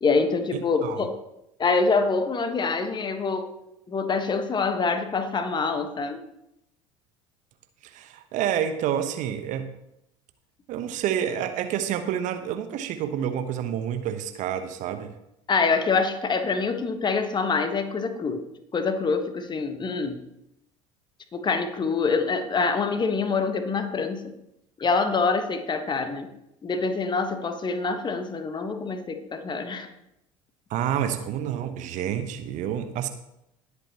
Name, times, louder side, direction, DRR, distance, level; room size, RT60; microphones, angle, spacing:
voice 1, 0.0-1.1 1.6-3.6 3.9-6.2 15.5-18.4 18.7-20.2 21.3-24.2 24.8-26.3 26.6-29.9, left 4 dB, 25° left, 8 dB, 1.4 m, -25 dB
voice 2, 0.5-1.0 7.8-9.7 10.7-15.1 30.7-33.1, right 9 dB, 50° right, 9 dB, 1.0 m, -29 dB
19.0 x 8.2 x 3.0 m, 0.83 s
figure-of-eight pair, 65°, 17 cm